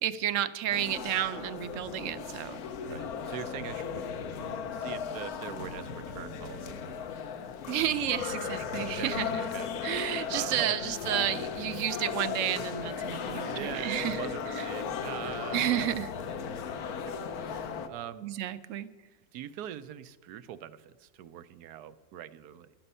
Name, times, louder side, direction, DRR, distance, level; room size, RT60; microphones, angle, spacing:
voice 1, 0.0-2.6 7.7-9.4 9.8-14.2 14.6-14.7 15.5-16.1 18.2-18.9, right 11 dB, 65° right, 13 dB, 0.9 m, -31 dB
sound 1, 0.7-17.9, left 6 dB, 70° left, 1.3 m, -36 dB
voice 2, 2.8-4.0 4.7-6.7 8.8-9.2 9.5-9.7 10.3-10.9 13.5-16.0 16.6-16.7 17.1-18.3 19.3-22.7, right 11 dB, 85° right, 13 dB, 1.2 m, -42 dB
13.0 x 11.0 x 5.5 m, 1.4 s
omnidirectional pair, 1.6 m